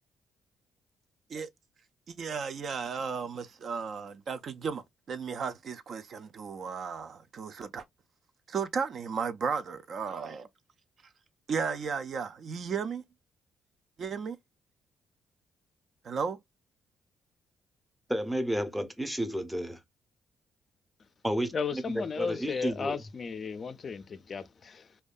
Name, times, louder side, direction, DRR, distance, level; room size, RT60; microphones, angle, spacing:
voice 1, 2.1-7.8 8.5-10.5 11.5-13.0 14.0-14.4 16.0-16.4, right 6 dB, 55° right, 0.3 m, -34 dB
voice 2, 18.1-19.8 21.2-23.0, equal, 5° right, 0.6 m, -32 dB
voice 3, 21.5-25.0, left 5 dB, 45° left, 0.4 m, -35 dB
2.6 x 2.2 x 2.3 m
cardioid pair, 90°, 0 cm